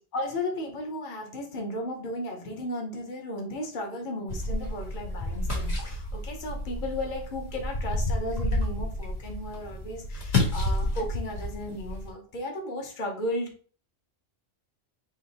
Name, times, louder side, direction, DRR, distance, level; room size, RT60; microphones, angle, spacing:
voice 1, 0.1-13.5, left 1 dB, 50° left, 1 dB, 1.1 m, -35 dB
sound 1, 4.3-12.1, left 1 dB, 70° left, 1.8 m, -30 dB
3.7 x 2.8 x 4.1 m, 0.40 s
omnidirectional pair, 1.1 m